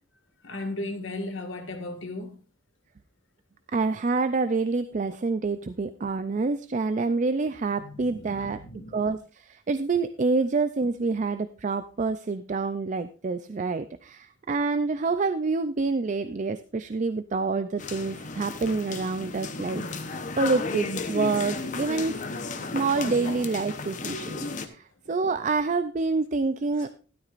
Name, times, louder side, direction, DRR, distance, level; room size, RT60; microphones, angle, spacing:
voice 1, 0.4-2.4 7.8-9.2 26.8-26.9, left 2 dB, 85° left, 1.9 m, -36 dB
voice 2, 3.7-8.6 8.9-9.2 9.5-22.2 22.7-26.9, right 4 dB, 40° right, 0.4 m, -27 dB
sound 1, 17.8-24.7, left 3 dB, 40° left, 0.9 m, -34 dB
13.0 x 12.0 x 2.5 m
head